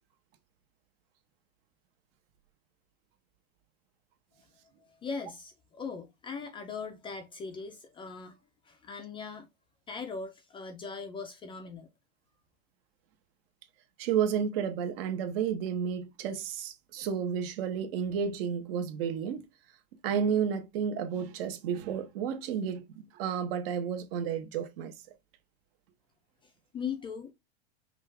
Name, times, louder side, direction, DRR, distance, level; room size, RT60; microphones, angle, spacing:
voice 1, 5.0-8.4 8.6-9.5 9.9-11.9 26.4-27.3, left 5 dB, 15° left, 0.4 m, -40 dB
voice 2, 14.0-19.5 20.0-24.9, right 7 dB, 60° right, 1.0 m, -31 dB
5.4 x 2.4 x 3.2 m
supercardioid pair, 140°, 33 cm